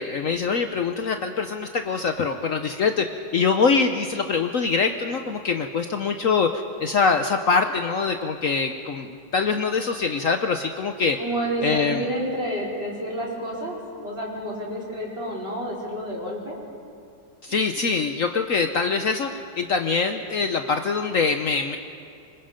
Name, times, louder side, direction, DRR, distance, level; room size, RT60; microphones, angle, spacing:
voice 1, 0.0-11.2 11.6-12.0 17.4-21.8, left 5 dB, 55° left, 6 dB, 1.1 m, -24 dB
voice 2, 11.2-13.8 14.0-16.6, right 1 dB, 35° right, -4 dB, 5.3 m, -29 dB
26.0 x 25.0 x 5.2 m, 2.4 s
omnidirectional pair, 1.8 m